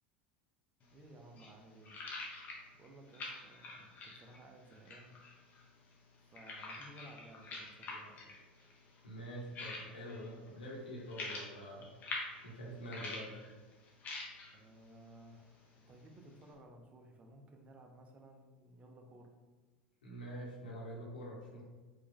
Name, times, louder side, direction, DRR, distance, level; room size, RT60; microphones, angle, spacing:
sound 1, 0.8-16.5, left 3 dB, 35° left, 1.1 m, -48 dB
voice 1, 0.9-2.0 2.7-5.2 6.3-8.3 14.5-19.3, right 1 dB, 25° right, 2 dB, 0.8 m, -57 dB
voice 2, 9.0-11.9 12.4-13.4 20.0-21.6, equal, 75° left, -4 dB, 1.5 m, -46 dB
5.0 x 2.9 x 3.6 m, 1.3 s
figure-of-eight pair, 80°, 5 cm